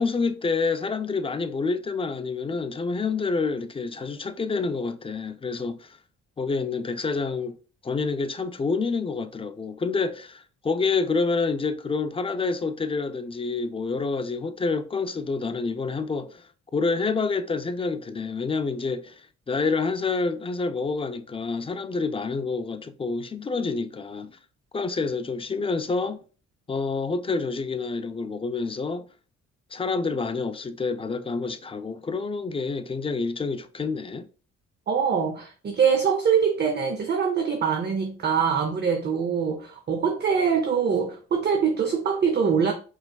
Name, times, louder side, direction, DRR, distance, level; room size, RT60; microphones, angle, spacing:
voice 1, 0.0-6.0 6.4-7.6 7.8-19.2 19.5-24.4 24.7-26.2 26.7-29.0 29.7-34.3, left 4 dB, 20° left, 0.3 m, -28 dB
voice 2, 34.9-42.7, right 6 dB, 35° right, 0.6 m, -23 dB
4.9 x 3.2 x 2.3 m
cardioid pair, 90°, 30 cm